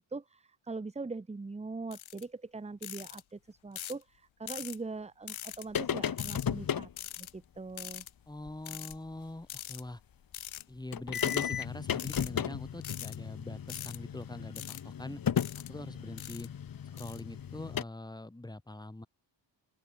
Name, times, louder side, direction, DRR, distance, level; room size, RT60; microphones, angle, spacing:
voice 1, 0.0-8.0, right 3 dB, 15° right, 1.5 m, -42 dB
sound 1, 1.9-2.2 2.8-3.2 3.7-4.0 4.5-4.8 5.3-5.6 6.2-6.5 7.0-7.3 7.8-8.1 8.6-8.9 9.5-9.8 10.3-10.6 11.1-11.4 11.9-12.3 12.8-13.2 13.7-14.0 14.5-14.8 15.4-15.7 16.2-16.5 17.0-17.2, left 11 dB, 85° left, 5.5 m, -42 dB
sound 2, 5.8-6.9 8.5-8.6 8.9-9.0 10.6-10.7 10.9-17.8, left 8 dB, 45° left, 3.3 m, -35 dB
voice 2, 8.3-10.0 10.7-15.2 15.6-16.5 16.9-19.1, left 1 dB, 10° left, 7.7 m, -43 dB
open air
wide cardioid pair, 175°, 46 cm